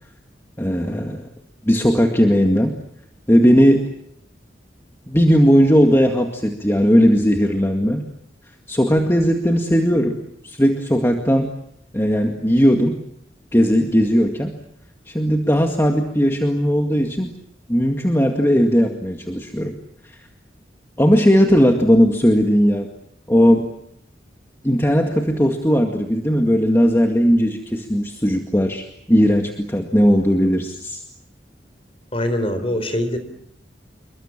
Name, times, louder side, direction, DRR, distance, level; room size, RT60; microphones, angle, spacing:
voice 1, 0.6-1.2 1.7-2.8 3.3-3.9 5.1-8.0 8.7-10.2 10.4-11.5 11.9-13.0 13.5-14.5 15.1-17.3 17.7-19.8 20.1-20.2 21.0-22.9 23.3-23.7 24.6-31.0, equal, 15° left, 3 dB, 2.0 m, -17 dB
voice 2, 32.1-33.2, left 1 dB, 30° left, 10 dB, 4.0 m, -23 dB
28.0 x 23.5 x 7.4 m, 0.71 s
head